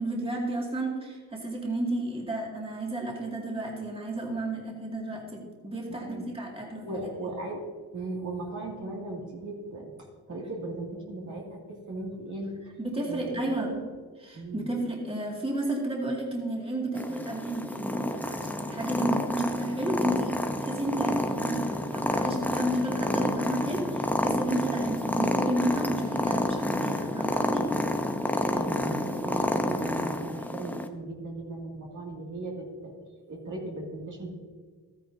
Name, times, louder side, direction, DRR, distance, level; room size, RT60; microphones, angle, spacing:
voice 1, 0.0-7.1 12.8-13.7 14.2-27.7, right 1 dB, 15° right, -2 dB, 2.3 m, -32 dB
voice 2, 5.9-6.2 6.8-7.6 7.9-9.9 10.3-12.5 13.0-13.8 14.3-14.7 28.5-32.9 33.3-34.3, right 2 dB, 50° right, -2 dB, 2.4 m, -37 dB
Purr, 17.0-30.9, left 1 dB, 5° left, 0.8 m, -29 dB
12.5 x 9.7 x 2.8 m, 1.5 s
cardioid pair, 70°, 38 cm